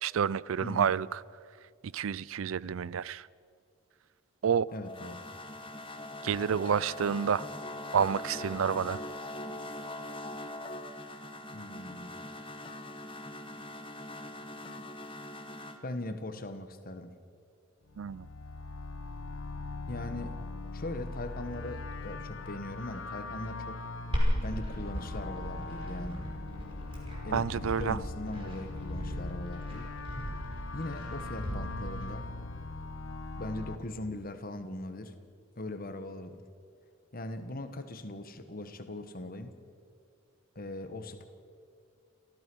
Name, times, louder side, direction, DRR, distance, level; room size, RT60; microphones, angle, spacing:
voice 1, 0.0-1.2 1.8-3.3 4.4-4.7 6.2-7.5 7.9-9.0 18.0-18.3 27.3-28.0, right 7 dB, 75° right, 0.4 m, -29 dB
voice 2, 4.7-5.2 11.5-12.2 15.8-17.1 19.9-20.5 20.7-23.8 24.4-26.2 27.2-29.9 30.7-32.3 33.4-35.2 35.6-36.4 37.1-39.5 40.5-41.3, left 1 dB, 45° left, 1.4 m, -40 dB
sound 1, 4.7-15.8, left 1 dB, 25° left, 1.2 m, -42 dB
sound 2, 17.9-33.8, left 3 dB, 70° left, 1.2 m, -41 dB
Glass, 24.1-32.1, equal, 25° right, 5.4 m, -36 dB
28.0 x 15.0 x 6.3 m
head